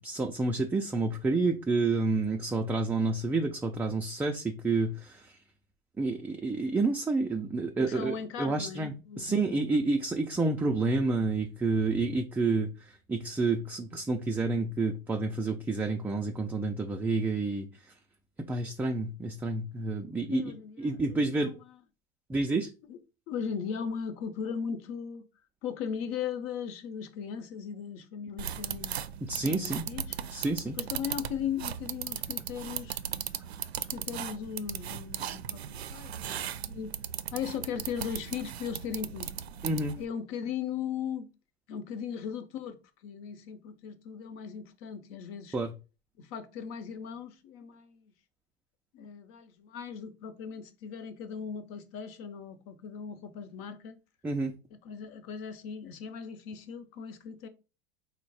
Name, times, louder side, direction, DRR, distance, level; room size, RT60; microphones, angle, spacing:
voice 1, 0.0-5.4 6.0-17.7 18.5-20.4 20.8-21.5 22.3-22.7 29.3-29.8 30.3-30.7 39.6-39.9 45.5-45.7 54.2-54.5, right 3 dB, 5° right, 0.3 m, -29 dB
voice 2, 7.8-9.6 20.3-21.8 22.8-23.0 23.3-25.2 25.6-29.0 29.4-30.2 30.8-33.0 33.8-36.4 36.7-36.9 37.3-39.3 40.0-41.3 41.7-45.6 46.2-48.1 48.9-54.0 54.8-57.5, left 7 dB, 45° left, 0.8 m, -38 dB
sound 1, 28.4-40.1, right 9 dB, 85° right, 0.5 m, -37 dB
4.4 x 2.1 x 4.1 m
hypercardioid pair, 90°, 31 cm